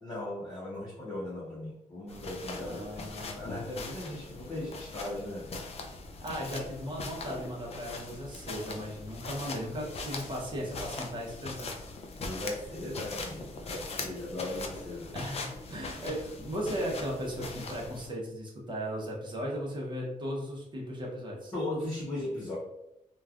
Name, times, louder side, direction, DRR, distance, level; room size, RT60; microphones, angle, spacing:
voice 1, 0.0-5.9 12.2-15.1 21.5-22.6, left 1 dB, 30° left, -8 dB, 0.8 m, -38 dB
sound 1, 2.1-18.1, left 3 dB, 45° left, 0.4 m, -41 dB
voice 2, 2.7-3.6 6.2-11.7 15.1-21.5, equal, 30° right, -3 dB, 0.9 m, -37 dB
3.1 x 2.3 x 2.4 m, 0.86 s
wide cardioid pair, 120°, 15 cm